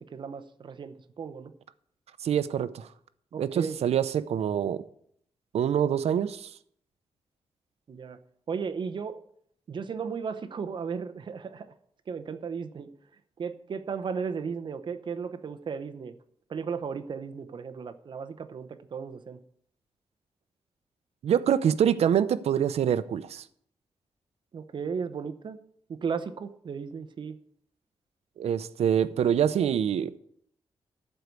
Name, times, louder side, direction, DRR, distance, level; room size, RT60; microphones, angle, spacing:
voice 1, 0.0-1.5 3.3-3.8 7.9-8.2 8.5-9.2 9.7-11.7 12.1-12.9 13.4-16.1 16.5-19.4 24.5-25.6 25.9-27.4, right 6 dB, 50° right, 0.8 m, -35 dB
voice 2, 2.2-2.9 3.4-4.9 5.5-6.5 21.2-23.5 28.4-30.2, right 9 dB, 80° right, 0.6 m, -25 dB
13.0 x 4.6 x 8.3 m
wide cardioid pair, 160°, 11 cm